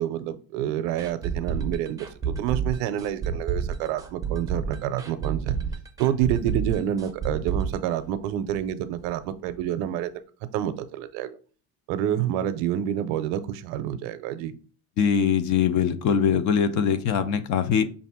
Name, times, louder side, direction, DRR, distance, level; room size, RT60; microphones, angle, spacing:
voice 1, 0.0-5.6 6.0-10.2 10.5-11.4 11.9-14.5, right 11 dB, 70° right, 0.6 m, -28 dB
sound 1, 1.0-8.7 9.0-9.1 9.5-9.6, right 6 dB, 10° right, 0.5 m, -30 dB
voice 2, 15.0-17.8, left 7 dB, 45° left, 0.5 m, -22 dB
5.4 x 2.5 x 3.5 m
supercardioid pair, 125°, 43 cm